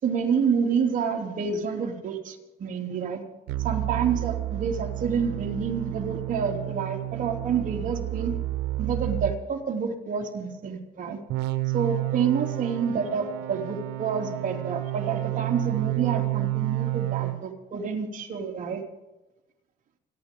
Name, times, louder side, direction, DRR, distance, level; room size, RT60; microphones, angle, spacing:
voice 1, 0.0-3.2 3.6-8.4 8.8-11.2 11.7-18.8, right 6 dB, 50° right, 2 dB, 3.2 m, -28 dB
sound 1, 3.5-9.4 11.3-17.4, right 19 dB, 80° right, 1.5 m, -30 dB
30.0 x 11.5 x 3.8 m, 1.0 s
cardioid pair, 110°, 17 cm